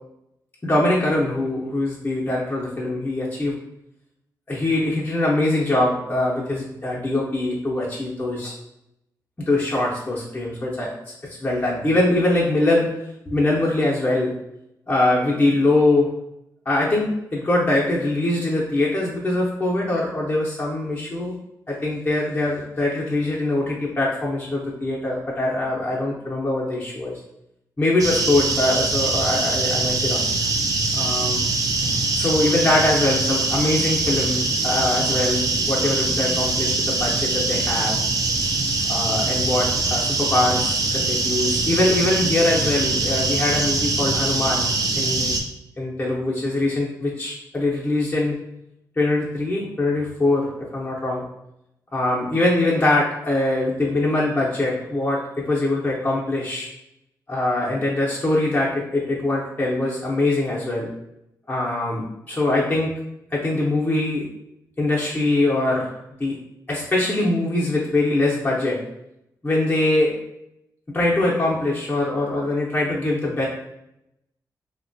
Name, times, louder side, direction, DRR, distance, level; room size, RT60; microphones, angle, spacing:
voice 1, 0.6-3.5 4.5-8.5 9.5-10.9 11.3-12.9 13.3-14.3 14.9-16.1 16.7-21.3 21.7-27.2 27.8-30.3 30.9-31.5 32.1-38.0 38.9-45.4 45.8-48.4 49.0-51.2 51.9-56.7 57.3-60.9 61.5-62.9 63.3-64.2 64.8-65.9 66.2-66.4 66.7-68.8 69.4-70.1 70.9-73.5, left 2 dB, 25° left, -5 dB, 0.6 m, -22 dB
sound 1, 28.0-45.4, right 3 dB, 55° right, 0.4 m, -23 dB
3.0 x 2.1 x 2.6 m, 0.83 s
cardioid pair, 85°, 7 cm